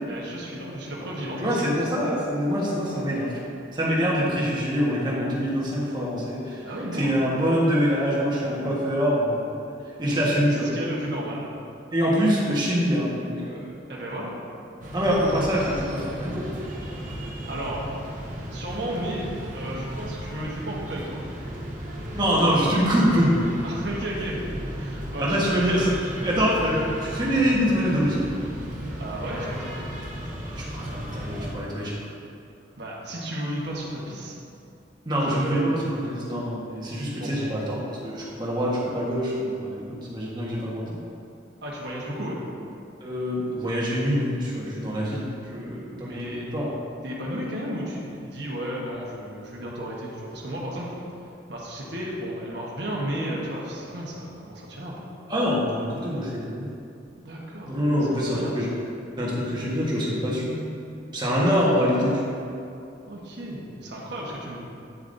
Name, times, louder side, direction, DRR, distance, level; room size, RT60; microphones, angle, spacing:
voice 1, 0.0-1.8 6.6-7.2 10.0-10.4 10.7-11.4 13.9-14.3 17.5-17.8 18.5-19.3 19.5-21.2 23.6-24.4 24.8-25.8 29.0-29.9 32.8-34.4 35.1-35.8 37.0-37.4 41.6-42.4 46.0-46.4 47.0-50.9 51.5-55.0 57.2-57.8 58.1-58.7 63.1-64.6, right 1 dB, 60° right, -4 dB, 1.2 m, -33 dB
voice 2, 1.4-3.5 3.7-6.6 6.9-9.5 10.0-10.7 11.9-13.7 14.9-16.5 22.1-23.3 25.2-25.9 26.2-28.3 30.6-31.9 35.0-41.0 43.0-46.7 55.3-56.7 57.7-58.7 59.2-60.6 61.1-62.4, equal, 25° right, -6 dB, 1.4 m, -25 dB
sound 1, 14.8-31.5, equal, 45° right, 1.1 m, -35 dB
9.3 x 7.0 x 2.7 m, 2.5 s
head